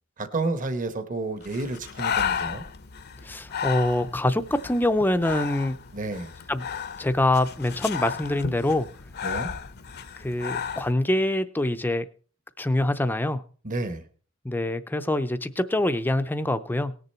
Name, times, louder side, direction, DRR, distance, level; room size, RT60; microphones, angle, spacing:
voice 1, 0.2-2.6 5.9-6.3 9.2-9.5 13.6-14.0, right 2 dB, 40° right, 9 dB, 1.2 m, -30 dB
Breathing, 1.4-10.9, left 7 dB, 50° left, 0.7 m, -33 dB
voice 2, 3.2-5.8 6.5-6.7 7.0-8.9 10.2-12.0 12.6-13.4 14.4-16.9, left 1 dB, 10° left, 10 dB, 0.5 m, -25 dB
18.5 x 6.8 x 4.4 m, 0.41 s
head